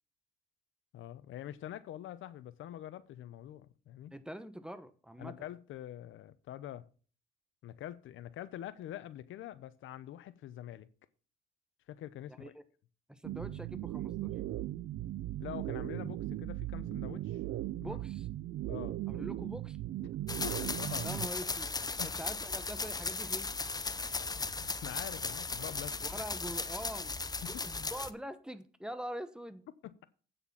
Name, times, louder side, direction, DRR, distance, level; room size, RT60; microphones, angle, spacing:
voice 1, 0.9-4.1 5.2-6.9 7.6-10.9 11.9-12.5 15.4-17.4 17.8-18.0 18.7-19.0 20.3-21.1 22.0-22.1 24.3-26.1 27.4-27.5 29.8-30.1, left 12 dB, 80° left, 0.8 m, -45 dB
voice 2, 4.1-5.3 12.3-12.6 13.1-14.3 17.8-18.3 19.1-19.8 21.0-21.7 22.0-23.5 26.0-27.2 27.4-29.7, equal, 5° right, 1.2 m, -44 dB
sound 1, 13.2-21.3, right 15 dB, 75° right, 0.6 m, -38 dB
sound 2, 20.3-28.1, left 3 dB, 20° left, 0.8 m, -37 dB
9.0 x 7.0 x 5.6 m
cardioid pair, 90°, 20 cm